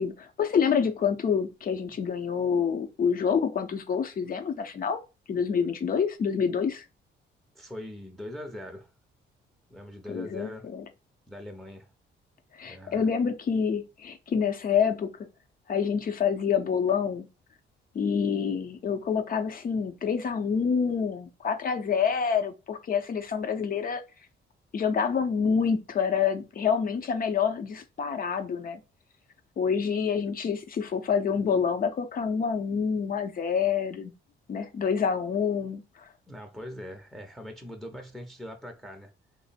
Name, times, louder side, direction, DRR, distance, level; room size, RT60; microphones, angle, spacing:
voice 1, 0.0-5.0 5.3-6.8 10.1-10.8 12.5-15.1 15.7-17.3 17.9-24.0 24.7-28.8 29.6-34.1 34.5-36.1, left 6 dB, 45° left, 0.7 m, -27 dB
voice 2, 7.5-8.9 9.7-10.7 11.3-11.9 12.6-13.1 36.3-39.1, left 1 dB, ahead, 0.7 m, -41 dB
3.2 x 2.0 x 4.2 m
cardioid pair, 90°, 20 cm